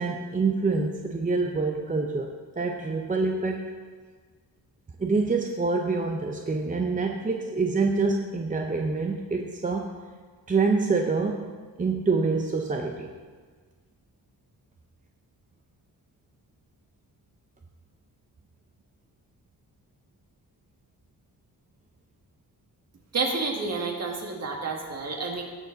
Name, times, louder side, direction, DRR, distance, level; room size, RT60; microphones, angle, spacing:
voice 1, 0.0-3.7 5.0-9.9 10.5-11.5 11.8-13.1, right 4 dB, 20° right, 2 dB, 0.5 m, -26 dB
voice 2, 23.1-25.4, right 3 dB, 40° right, 1 dB, 1.7 m, -29 dB
17.0 x 6.9 x 3.9 m, 1.5 s
wide cardioid pair, 170°, 40 cm